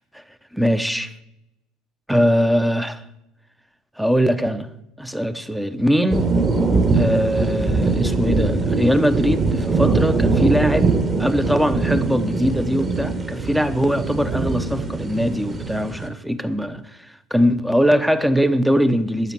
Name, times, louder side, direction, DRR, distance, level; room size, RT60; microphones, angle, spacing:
voice 1, 0.5-1.1 2.1-3.0 4.0-4.7 5.0-6.3 7.0-10.9 11.2-16.8 17.3-19.3, equal, 5° right, 0.9 m, -21 dB
sound 1, 6.1-16.1, right 3 dB, 25° right, 2.0 m, -22 dB
12.0 x 7.3 x 7.6 m
figure-of-eight pair, 65°, 0 cm